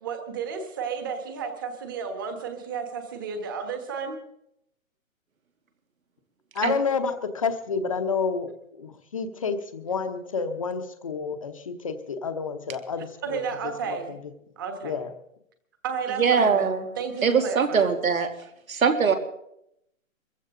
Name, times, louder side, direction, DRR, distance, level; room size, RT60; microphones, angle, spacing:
voice 1, 0.0-4.2 9.5-9.6 13.2-14.2 14.6-15.1 15.8-17.9, right 6 dB, 15° right, 6 dB, 1.3 m, -32 dB
voice 2, 6.5-14.2 14.8-15.1, left 5 dB, 25° left, 8 dB, 0.9 m, -30 dB
voice 3, 16.2-16.8 17.2-18.3 18.7-19.1, right 6 dB, 80° right, 5 dB, 2.8 m, -21 dB
23.5 x 15.0 x 3.8 m, 0.76 s
hypercardioid pair, 175°, 41 cm